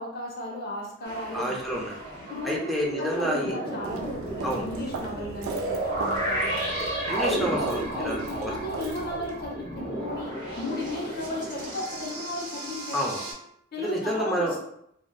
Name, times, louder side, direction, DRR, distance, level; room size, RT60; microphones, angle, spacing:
voice 1, 0.0-1.6 2.2-2.6 3.0-6.8 7.3-7.5 7.9-13.1 13.7-14.6, left 1 dB, 50° left, -2 dB, 0.7 m, -35 dB
sound 1, 1.0-13.3, right 1 dB, 40° right, 0.8 m, -33 dB
voice 2, 1.3-2.0 2.4-3.5 4.4-4.6 6.8-8.5 12.9-13.2 13.8-14.5, equal, ahead, -4 dB, 0.4 m, -29 dB
Walk footsteps, 3.8-9.4, right 4 dB, 90° right, 0.3 m, -38 dB
2.7 x 2.0 x 2.2 m, 0.72 s
head